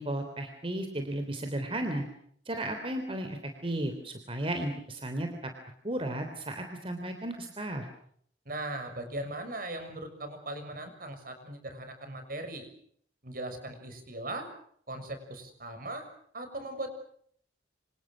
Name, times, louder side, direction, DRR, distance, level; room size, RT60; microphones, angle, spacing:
voice 1, 0.0-2.0 2.5-5.5 5.8-7.8, right 1 dB, 30° right, 6 dB, 3.4 m, -34 dB
voice 2, 8.4-12.7 13.2-14.5 14.9-16.1 16.3-16.9, right 1 dB, 50° right, 8 dB, 6.5 m, -39 dB
28.0 x 27.0 x 6.4 m, 0.64 s
head